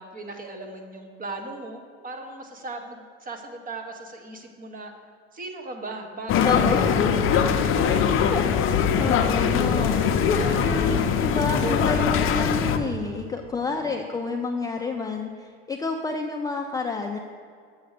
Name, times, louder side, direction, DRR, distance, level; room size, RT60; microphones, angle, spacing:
voice 1, 0.0-4.9 5.3-8.0 10.0-11.0 11.5-12.1 13.5-14.1, right 2 dB, 25° right, 4 dB, 1.2 m, -38 dB
sound 1, 6.3-12.8, left 7 dB, 40° left, 0.7 m, -22 dB
voice 2, 6.4-6.9 8.3-10.2 10.6-17.2, left 4 dB, 10° left, 2 dB, 0.4 m, -29 dB
6.8 x 6.4 x 6.5 m, 2.2 s
supercardioid pair, 115°, 31 cm